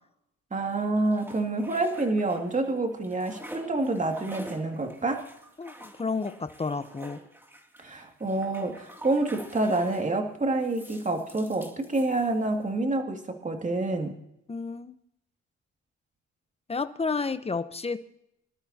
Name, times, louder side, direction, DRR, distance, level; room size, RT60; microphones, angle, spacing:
voice 1, 0.5-5.2 7.8-14.2, right 2 dB, 25° right, 4 dB, 2.4 m, -28 dB
sound 1, 0.7-2.7 2.9-10.1 10.6-12.6, right 1 dB, 5° right, 2.6 m, -47 dB
voice 2, 5.6-7.2 14.5-14.9 16.7-18.0, left 4 dB, 20° left, 12 dB, 0.9 m, -31 dB
24.5 x 12.5 x 2.9 m, 0.80 s
cardioid pair, 90°, 30 cm